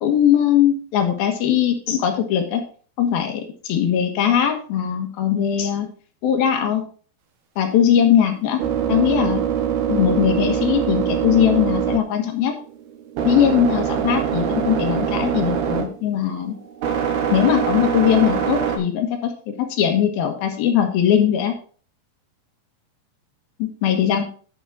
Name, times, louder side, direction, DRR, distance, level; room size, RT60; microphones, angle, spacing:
voice 1, 0.0-2.6 3.0-5.9 6.2-6.8 7.6-8.6 8.9-9.4 9.9-12.6 13.2-16.6 17.3-21.5 23.6-24.2, left 9 dB, 75° left, 4 dB, 3.3 m, -20 dB
sound 1, 7.7-18.8, right 8 dB, 80° right, 3.4 m, -24 dB
11.0 x 5.5 x 4.9 m, 0.42 s
omnidirectional pair, 4.4 m